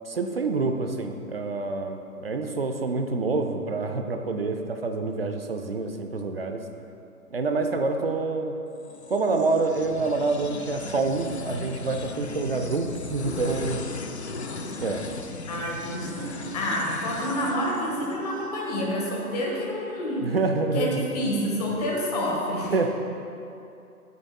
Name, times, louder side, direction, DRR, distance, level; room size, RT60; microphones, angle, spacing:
voice 1, 0.0-6.6 7.3-8.5 9.1-13.8 14.8-15.0 20.2-21.0 22.7-22.9, right 3 dB, 40° right, 5 dB, 0.6 m, -27 dB
sound 1, 8.8-18.5, left 3 dB, 45° left, 0.6 m, -37 dB
voice 2, 15.5-20.3 20.7-22.8, equal, 25° left, -2 dB, 1.4 m, -28 dB
15.5 x 9.3 x 2.2 m, 2.7 s
figure-of-eight pair, 140°, 47 cm